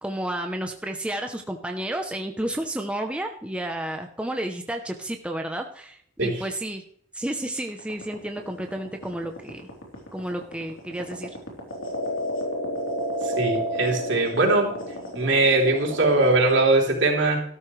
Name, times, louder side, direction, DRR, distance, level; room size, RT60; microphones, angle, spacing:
voice 1, 0.0-6.8 7.1-9.6 10.1-11.3, right 1 dB, 5° right, 4 dB, 0.7 m, -31 dB
sound 1, 7.6-16.5, equal, 85° left, 3.5 m, -30 dB
voice 2, 13.2-14.8 15.1-17.4, right 2 dB, 65° right, -1 dB, 3.6 m, -21 dB
13.5 x 12.5 x 3.2 m, 0.63 s
head